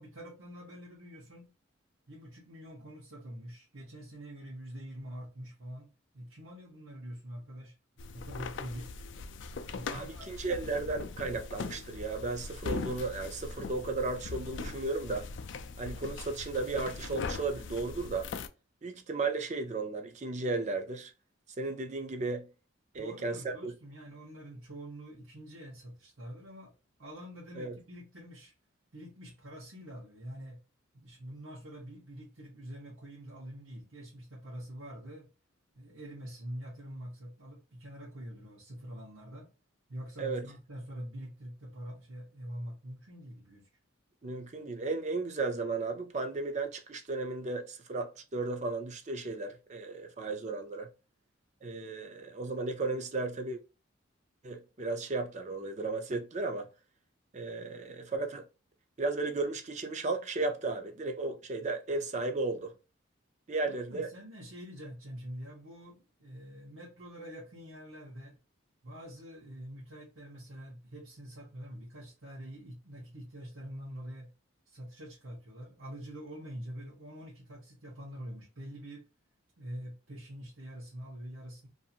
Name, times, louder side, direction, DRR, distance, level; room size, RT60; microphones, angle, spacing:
voice 1, 0.0-1.5 2.1-7.7 8.1-8.9 9.7-10.3 22.9-26.7 27.0-28.5 28.9-30.6 30.9-35.3 35.7-39.5 39.9-43.7 63.6-68.4 68.8-74.3 74.7-79.1 79.6-81.7, equal, 75° right, 1.0 m, -45 dB
sound 1, 8.0-18.5, left 4 dB, 65° left, 0.3 m, -41 dB
voice 2, 9.9-15.3 15.8-18.3 18.8-21.1 21.6-22.5 22.9-23.7 27.6-27.7 40.2-40.4 44.2-50.9 51.6-53.6 54.4-56.7 57.3-58.4 59.0-62.7 63.5-64.1, right 3 dB, 35° right, 0.4 m, -34 dB
2.6 x 2.5 x 2.7 m
head